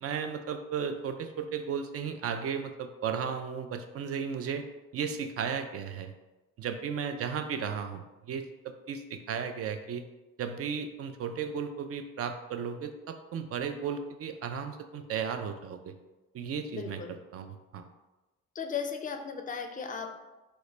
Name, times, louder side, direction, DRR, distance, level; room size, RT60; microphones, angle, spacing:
voice 1, 0.0-4.6 4.9-6.1 6.6-10.0 10.4-15.9 16.3-17.0 17.3-17.9, right 7 dB, 50° right, 7 dB, 0.4 m, -35 dB
voice 2, 16.7-17.2 18.5-20.2, left 6 dB, 25° left, 5 dB, 0.4 m, -36 dB
3.8 x 2.1 x 3.2 m, 1.1 s
cardioid pair, 90°, 30 cm